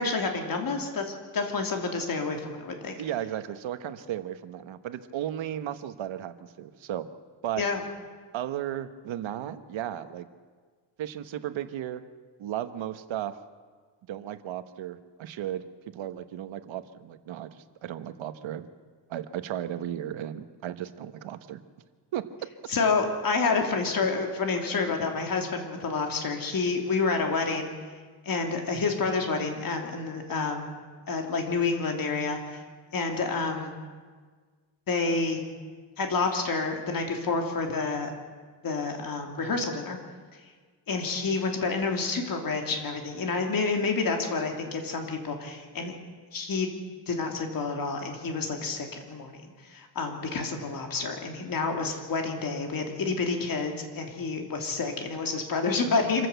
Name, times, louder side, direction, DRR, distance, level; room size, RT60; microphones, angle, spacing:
voice 1, 0.0-3.0 7.6-7.8 22.7-27.7 28.2-30.7 31.1-32.6 32.9-33.8 34.9-35.4 36.0-38.1 38.6-40.0 40.9-45.9 46.3-46.7 47.1-56.3, left 4 dB, 50° left, 3 dB, 3.2 m, -29 dB
voice 2, 3.0-7.1 7.4-7.6 8.3-10.3 11.0-12.0 12.4-13.4 14.1-15.6 15.9-18.7 19.1-21.6 22.1-22.5, right 11 dB, 90° right, 10 dB, 1.3 m, -35 dB
26.0 x 14.0 x 8.1 m, 1.5 s
wide cardioid pair, 140°, 45 cm